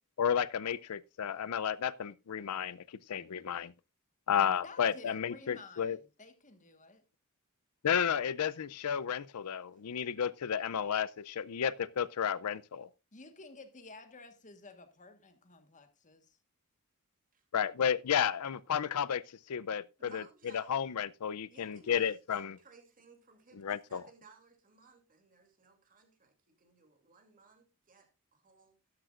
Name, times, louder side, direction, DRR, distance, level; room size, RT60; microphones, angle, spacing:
voice 1, 0.2-3.7 4.3-6.0 7.8-12.9 17.5-19.2 19.5-20.2 20.5-22.6 23.5-24.0, left 8 dB, 80° left, 0.5 m, -32 dB
voice 2, 4.6-7.0 13.1-16.4, left 3 dB, 35° left, 1.4 m, -53 dB
voice 3, 20.0-20.8 21.5-28.8, right 4 dB, 40° right, 2.7 m, -60 dB
12.5 x 12.0 x 2.4 m
head